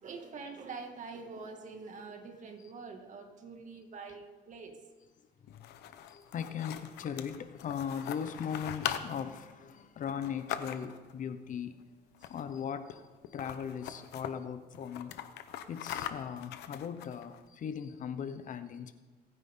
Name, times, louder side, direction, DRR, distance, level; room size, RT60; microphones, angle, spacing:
voice 1, 0.0-4.8, right 4 dB, 45° right, 2.4 m, -45 dB
sound 1, 5.5-11.1 12.1-12.6 12.9-13.0 13.2-14.3 14.7-17.4, left 10 dB, 80° left, 1.0 m, -41 dB
voice 2, 5.5-11.7 12.3-15.1 15.7-19.0, left 7 dB, 50° left, 1.0 m, -39 dB
25.5 x 9.8 x 3.9 m
cardioid pair, 110°, 17 cm